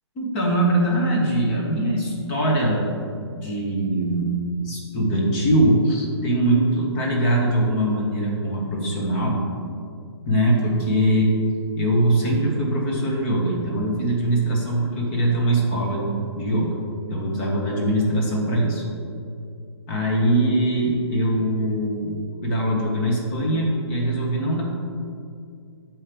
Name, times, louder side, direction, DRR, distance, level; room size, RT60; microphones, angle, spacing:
voice 1, 0.2-3.0 3.3-4.3 4.6-9.4 10.3-11.3 11.7-16.8 17.1-18.8 19.9-24.6, right 1 dB, 10° left, -2 dB, 0.7 m, -22 dB
7.1 x 4.4 x 5.0 m, 2.3 s
hypercardioid pair, 175°, 14 cm